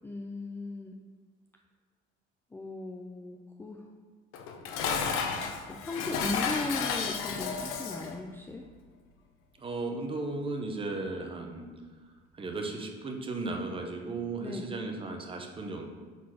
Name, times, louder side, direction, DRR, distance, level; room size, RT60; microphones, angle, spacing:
voice 1, 0.0-1.0 2.5-3.9 5.3-8.6 14.4-14.8, left 2 dB, 10° left, 1 dB, 0.3 m, -38 dB
Dishes pots and pans, 4.3-8.2, left 6 dB, 75° left, 0.8 m, -32 dB
voice 2, 9.6-11.7 12.3-15.9, right 3 dB, 25° right, 3 dB, 0.8 m, -35 dB
5.8 x 4.1 x 4.8 m, 1.5 s
cardioid pair, 125°, 21 cm